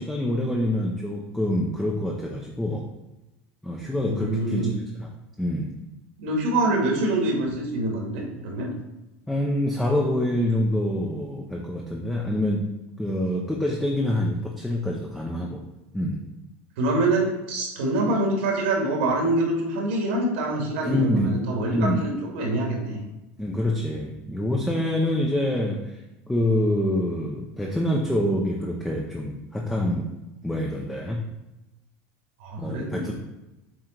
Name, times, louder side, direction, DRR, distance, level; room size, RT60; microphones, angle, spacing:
voice 1, 0.0-2.8 3.6-5.1 5.4-5.7 9.3-12.6 13.0-15.6 15.9-16.2 20.8-21.3 21.7-22.0 23.4-25.9 26.3-30.1 30.4-31.2 32.6-33.1, left 1 dB, 5° left, -1 dB, 0.6 m, -26 dB
voice 2, 4.0-4.7 6.2-8.7 16.8-23.0 32.4-33.1, right 2 dB, 85° right, 0 dB, 2.3 m, -25 dB
7.7 x 3.8 x 4.5 m, 0.97 s
cardioid pair, 170°, 6 cm